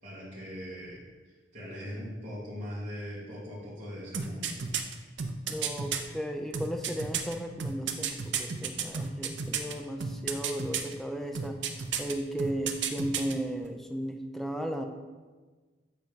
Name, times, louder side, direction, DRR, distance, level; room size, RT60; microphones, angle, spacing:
voice 1, 0.0-1.0 1.3-4.6, equal, 40° right, -10 dB, 2.5 m, -40 dB
sound 1, 4.1-6.0 6.5-9.7 10.0-10.9 11.4-12.1 12.4-13.3 13.6-13.7, right 7 dB, 75° right, 0.7 m, -32 dB
voice 2, 5.5-11.7 12.0-14.8, right 1 dB, ahead, 3 dB, 0.5 m, -35 dB
7.7 x 4.5 x 5.4 m, 1.3 s
head